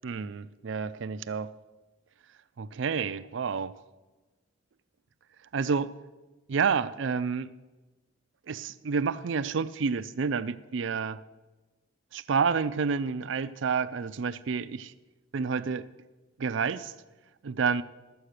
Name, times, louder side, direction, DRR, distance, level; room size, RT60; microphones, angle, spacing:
voice 1, 0.0-1.5 2.6-3.7 5.5-5.9 6.5-7.5 8.5-11.2 12.1-14.9 15.3-15.8 16.4-16.9 17.4-17.8, right 5 dB, 65° right, 13 dB, 0.4 m, -29 dB
11.5 x 7.7 x 6.5 m, 1.2 s
head